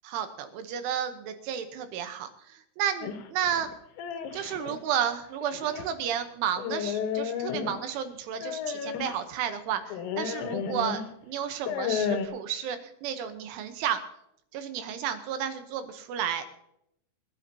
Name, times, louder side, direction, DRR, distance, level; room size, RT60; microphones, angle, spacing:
voice 1, 0.0-3.7 4.3-14.0 14.5-16.4, right 9 dB, 75° right, 8 dB, 3.4 m, -32 dB
sound 1, 3.0-4.8 5.4-5.9 6.6-7.9 8.4-9.2 9.9-11.1 11.5-12.3, left 7 dB, 85° left, 3.9 m, -32 dB
27.0 x 10.5 x 2.9 m, 0.77 s
omnidirectional pair, 5.8 m